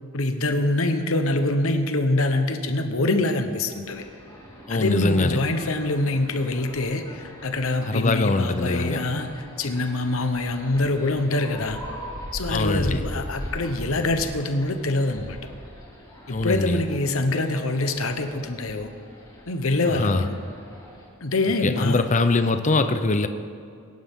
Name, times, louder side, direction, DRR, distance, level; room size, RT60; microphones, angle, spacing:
voice 1, 0.1-4.0 4.7-9.3 9.6-11.8 12.3-15.4 16.3-18.9 19.5-20.4 21.2-22.1, left 2 dB, 65° left, 7 dB, 1.1 m, -25 dB
sound 1, 3.8-21.1, equal, 15° left, 4.0 m, -40 dB
voice 2, 4.7-5.4 7.9-9.0 12.5-13.0 16.3-16.8 19.9-20.3 21.6-23.3, left 3 dB, 35° left, 9 dB, 0.6 m, -23 dB
21.5 x 11.5 x 3.7 m, 2.3 s
head